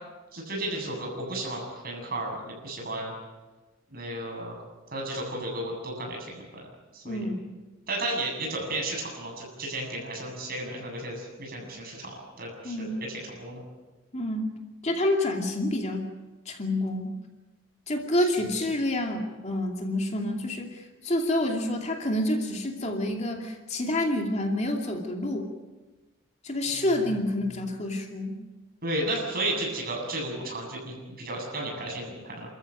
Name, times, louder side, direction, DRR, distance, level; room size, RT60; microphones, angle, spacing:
voice 1, 0.3-3.1 3.9-4.6 4.9-6.6 6.9-7.3 7.9-13.6 18.2-18.5 26.7-27.1 28.8-32.5, right 1 dB, 50° right, 0 dB, 8.0 m, -33 dB
voice 2, 7.0-7.4 12.6-13.0 14.1-14.5 14.8-16.1 16.5-17.1 17.9-25.5 26.4-28.4, left 1 dB, 35° left, 2 dB, 2.5 m, -28 dB
28.5 x 14.0 x 9.1 m, 1.2 s
head